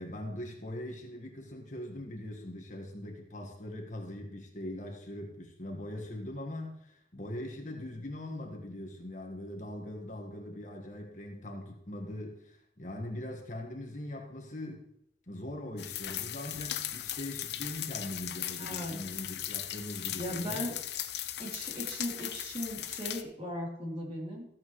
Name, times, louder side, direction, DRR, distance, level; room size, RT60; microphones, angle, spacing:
voice 1, 0.0-14.9 15.3-20.7, left 1 dB, 45° left, 1 dB, 1.6 m, -41 dB
sound 1, 15.8-23.2, left 12 dB, 70° left, 0.7 m, -38 dB
voice 2, 18.6-18.9 20.2-20.7 21.4-24.5, equal, 35° right, -4 dB, 3.5 m, -38 dB
14.0 x 8.6 x 3.2 m, 0.72 s
head